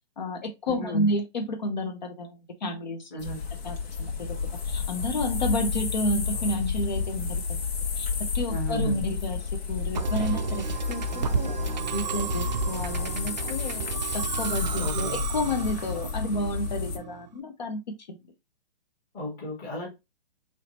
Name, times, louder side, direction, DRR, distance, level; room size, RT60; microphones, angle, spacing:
voice 1, 0.2-3.1 3.6-4.4 4.6-7.6 8.0-8.1 8.3-11.5 11.9-13.8 14.1-18.2, left 1 dB, 45° left, 0.8 m, -31 dB
voice 2, 0.7-1.1 3.1-3.4 8.5-9.0 14.8-15.2 19.1-19.9, equal, 10° left, 1.1 m, -35 dB
sound 1, 3.2-17.0, left 6 dB, 75° left, 1.7 m, -31 dB
Musical instrument, 9.9-17.3, right 6 dB, 45° right, 0.5 m, -32 dB
4.6 x 3.2 x 2.9 m
hypercardioid pair, 175°, 31 cm